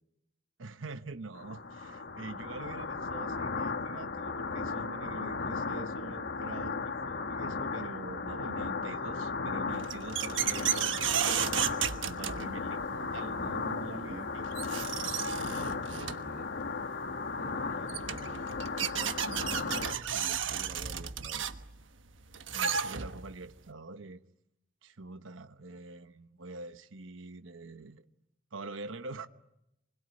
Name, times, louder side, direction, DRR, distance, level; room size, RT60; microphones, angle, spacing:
voice 1, 0.6-11.4 11.7-14.5 15.6-15.7 17.5-18.2 22.5-24.2 24.8-28.1 28.5-29.3, right 3 dB, 90° right, 1.1 m, -45 dB
sound 1, 1.4-20.0, left 4 dB, 60° left, 1.5 m, -36 dB
sound 2, 9.7-12.8 14.1-14.2 14.5-16.3 17.5-17.6 17.9-23.4, right 8 dB, 70° right, 1.3 m, -33 dB
voice 2, 15.4-16.5 17.4-17.6 18.0-18.4 18.8-21.5, right 2 dB, 45° right, 1.3 m, -47 dB
28.5 x 21.5 x 9.8 m
head